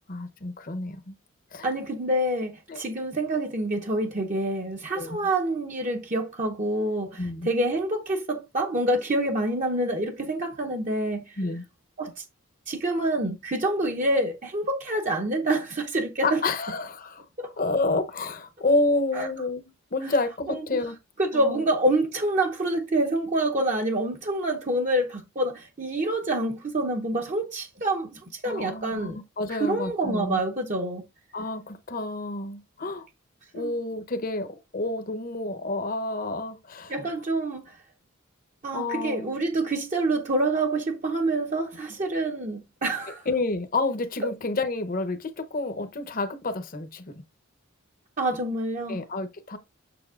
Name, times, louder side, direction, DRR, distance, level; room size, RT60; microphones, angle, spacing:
voice 1, 0.1-1.1 1.5-1.7 2.7-2.8 4.9-5.2 7.2-7.5 11.4-11.6 16.2-17.2 17.6-21.0 21.3-21.6 28.4-30.4 31.3-33.1 33.5-36.9 38.7-39.4 43.3-47.2 48.9-49.6, left 2 dB, 45° left, 0.8 m, -29 dB
voice 2, 1.6-11.4 12.0-12.2 12.7-16.4 17.4-17.5 19.1-19.3 20.0-20.1 20.5-20.6 21.2-29.2 29.5-31.0 33.6-33.7 36.9-37.8 38.6-43.3 48.2-49.0, right 1 dB, 35° right, 0.8 m, -27 dB
7.0 x 6.9 x 2.4 m
head